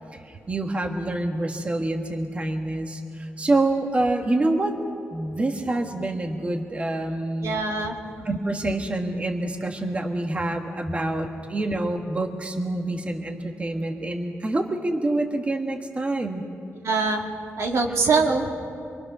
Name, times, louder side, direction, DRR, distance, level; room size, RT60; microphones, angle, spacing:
voice 1, 0.1-4.8 5.1-7.6 8.2-16.4, right 2 dB, 25° right, 3 dB, 1.4 m, -26 dB
voice 2, 7.4-8.0 16.8-17.2 17.6-18.5, right 4 dB, 75° right, 1 dB, 2.2 m, -23 dB
26.5 x 23.0 x 6.1 m, 2.5 s
wide cardioid pair, 135°, 5 cm